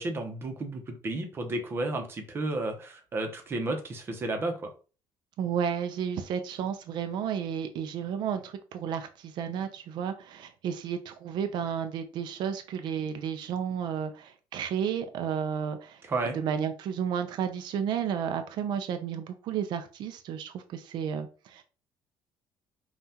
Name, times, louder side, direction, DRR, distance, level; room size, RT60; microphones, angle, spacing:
voice 1, 0.0-4.5 16.0-16.4, right 2 dB, 30° right, 5 dB, 0.8 m, -32 dB
voice 2, 5.4-16.0 16.3-21.6, right 8 dB, 65° right, 8 dB, 0.5 m, -32 dB
5.4 x 2.4 x 2.8 m, 0.35 s
cardioid pair, 145°, 8 cm